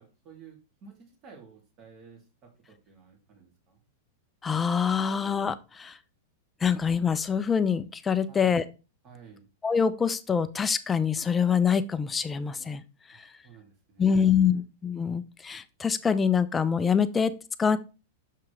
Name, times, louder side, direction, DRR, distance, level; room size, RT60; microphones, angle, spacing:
voice 1, 0.0-3.8 8.3-8.6 9.0-9.5 13.1-14.6, right 6 dB, 40° right, 1 dB, 2.9 m, -52 dB
voice 2, 4.4-6.0 6.6-8.6 9.6-12.8 13.2-13.3 14.0-17.3 17.6-17.8, left 6 dB, 15° left, 12 dB, 0.6 m, -25 dB
6.6 x 5.7 x 3.3 m, 0.30 s
hypercardioid pair, 130°, 0 cm